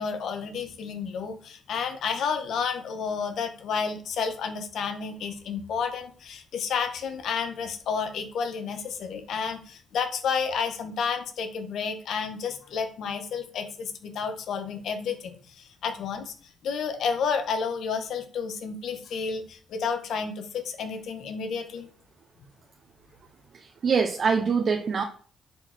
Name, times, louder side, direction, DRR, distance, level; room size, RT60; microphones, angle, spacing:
voice 1, 0.0-16.3 16.6-21.9, left 6 dB, 70° left, 1.6 m, -31 dB
voice 2, 23.5-25.0, right 5 dB, 50° right, 1.0 m, -24 dB
9.9 x 4.9 x 4.5 m
cardioid pair, 90°, 0 cm